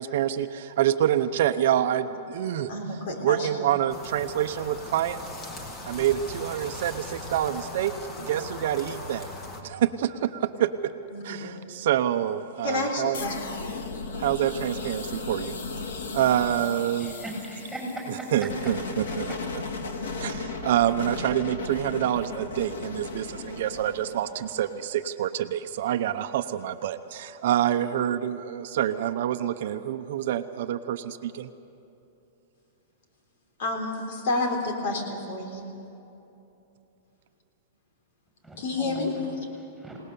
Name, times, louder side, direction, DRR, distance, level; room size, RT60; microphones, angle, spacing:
voice 1, 0.0-5.2 5.8-9.3 9.6-10.9 11.2-13.2 14.2-15.5 16.1-17.2 18.3-19.3 20.2-31.5, right 11 dB, 60° right, 9 dB, 0.8 m, -27 dB
voice 2, 2.7-3.7 11.1-11.6 12.6-13.7 15.1-15.2 33.6-35.7 38.6-39.1, left 2 dB, 55° left, 3 dB, 3.6 m, -30 dB
sound 1, 3.9-9.6, left 2 dB, 20° left, 2.0 m, -39 dB
sound 2, 13.1-24.9, left 4 dB, 85° left, 2.3 m, -36 dB
voice 3, 17.0-18.5 19.3-19.4 38.4-40.0, right 1 dB, 5° left, -2 dB, 6.5 m, -38 dB
26.5 x 19.0 x 6.9 m, 2.9 s
supercardioid pair, 165°, 0 cm